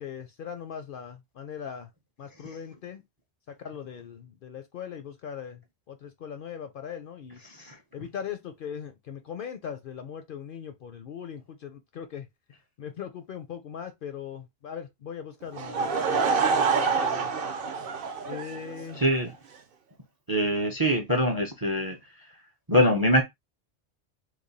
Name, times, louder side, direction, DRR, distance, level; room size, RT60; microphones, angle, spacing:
voice 1, 0.0-1.9 2.2-3.0 3.5-5.6 5.9-7.4 7.9-12.3 12.8-17.3 18.2-19.0, left 8 dB, 60° left, 0.6 m, -40 dB
Laughter / Crowd, 15.5-19.1, right 5 dB, 60° right, 0.8 m, -26 dB
voice 2, 19.0-19.3 20.3-22.0 22.7-23.2, equal, 30° right, 0.4 m, -23 dB
3.1 x 2.2 x 3.9 m
omnidirectional pair, 1.2 m